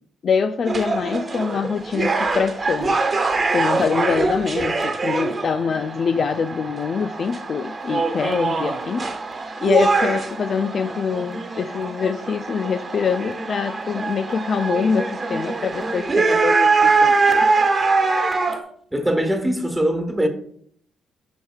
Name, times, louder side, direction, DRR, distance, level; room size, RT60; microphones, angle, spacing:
voice 1, 0.2-3.0 3.5-9.1 9.6-17.5, left 6 dB, 50° left, 0.4 m, -24 dB
sound 1, 0.6-18.6, right 4 dB, 30° right, 1.2 m, -23 dB
voice 2, 18.9-20.3, equal, 5° right, 1.5 m, -21 dB
11.5 x 5.1 x 2.4 m
cardioid pair, 90°, 0 cm